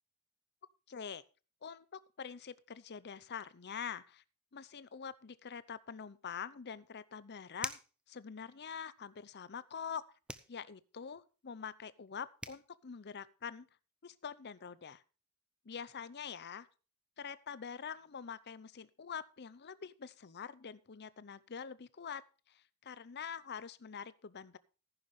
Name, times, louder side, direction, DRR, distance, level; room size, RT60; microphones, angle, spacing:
voice 1, 0.9-1.2 1.6-4.2 4.5-7.8 8.1-10.0 10.5-13.7 14.0-15.0 15.6-16.7 17.2-24.6, left 7 dB, 50° left, 17 dB, 0.7 m, -45 dB
sound 1, 6.6-6.7 7.6-8.0 10.3-10.6 12.1-12.2 12.4-12.6, right 1 dB, 5° right, 0.7 m, -42 dB
14.5 x 11.0 x 3.2 m, 0.34 s
head